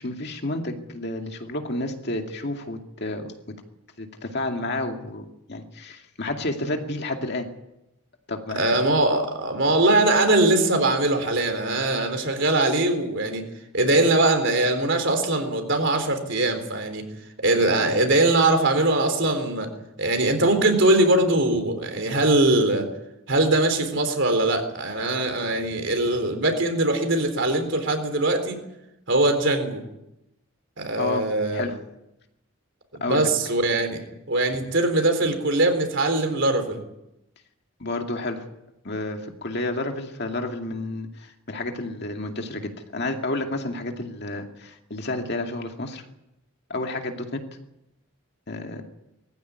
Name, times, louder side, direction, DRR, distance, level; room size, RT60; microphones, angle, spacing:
voice 1, 0.0-3.5 4.0-7.5 8.3-8.7 31.0-31.8 33.0-33.3 37.8-38.5 38.8-46.1 46.7-47.4 48.5-48.8, left 2 dB, 50° left, 3 dB, 2.4 m, -30 dB
voice 2, 8.6-13.5 13.7-17.0 17.4-19.7 20.0-22.9 23.3-28.6 29.1-29.8 30.8-31.7 33.0-36.8, right 2 dB, 55° right, 6 dB, 4.0 m, -21 dB
21.5 x 15.0 x 9.6 m, 0.89 s
head